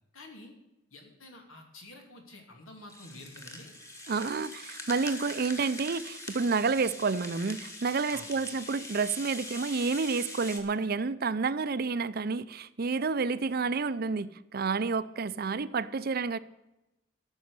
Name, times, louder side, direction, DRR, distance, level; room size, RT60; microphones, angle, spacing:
voice 1, 0.1-0.5 0.9-3.7 8.1-8.3, left 2 dB, 85° left, 3 dB, 2.8 m, -49 dB
Rattle (instrument), 2.9-10.6, left 1 dB, 15° left, 1.7 m, -43 dB
voice 2, 4.1-16.4, right 4 dB, 50° right, 16 dB, 0.5 m, -30 dB
13.5 x 6.4 x 9.6 m, 0.95 s
head